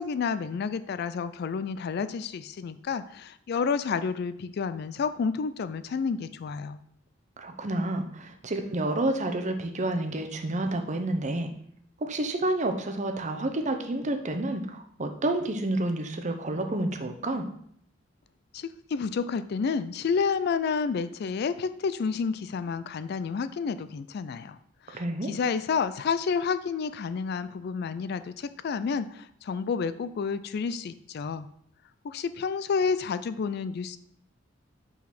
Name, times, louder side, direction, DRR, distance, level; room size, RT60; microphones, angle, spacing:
voice 1, 0.0-6.8 18.5-24.6 24.9-25.0 25.3-31.5 32.0-34.0, left 5 dB, 55° left, 13 dB, 0.3 m, -30 dB
voice 2, 7.4-11.5 12.0-17.5 24.9-25.3, right 1 dB, 35° right, 5 dB, 0.8 m, -29 dB
6.0 x 4.0 x 5.9 m, 0.67 s
head